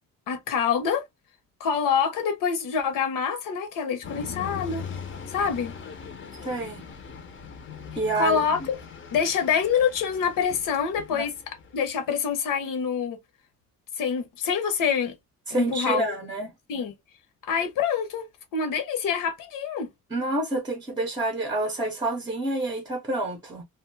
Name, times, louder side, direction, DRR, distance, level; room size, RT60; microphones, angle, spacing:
voice 1, 0.3-1.0 1.6-4.8 5.3-5.7 8.2-8.8 9.1-13.2 14.0-15.2 15.5-16.1 16.7-16.9 17.4-18.3 18.5-19.9, left 7 dB, 80° left, 0.9 m, -26 dB
sound 1, 4.0-12.0, left 6 dB, 35° left, 0.6 m, -40 dB
voice 2, 6.4-6.8 7.9-8.4 11.1-11.3 15.5-16.5 20.1-23.6, right 2 dB, 15° right, 0.6 m, -28 dB
2.6 x 2.2 x 3.2 m
cardioid pair, 175°, 32 cm